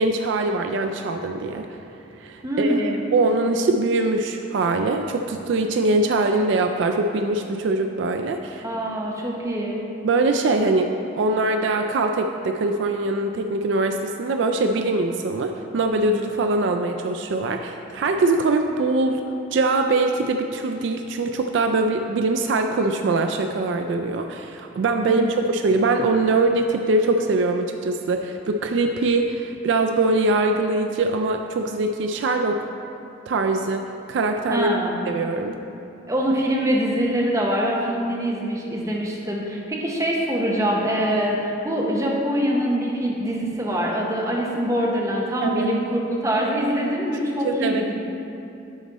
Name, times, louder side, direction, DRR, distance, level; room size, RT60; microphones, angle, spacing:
voice 1, 0.0-1.7 2.2-8.6 10.0-10.9 11.1-19.2 19.5-32.7 33.3-34.7 35.1-35.6 45.4-45.7 47.4-47.8, right 2 dB, 60° right, 5 dB, 0.3 m, -22 dB
voice 2, 2.4-3.1 8.6-9.8 25.1-25.3 34.5-35.0 36.1-45.8 46.2-47.9, equal, 15° right, -2 dB, 0.8 m, -24 dB
9.5 x 4.1 x 4.1 m, 2.8 s
head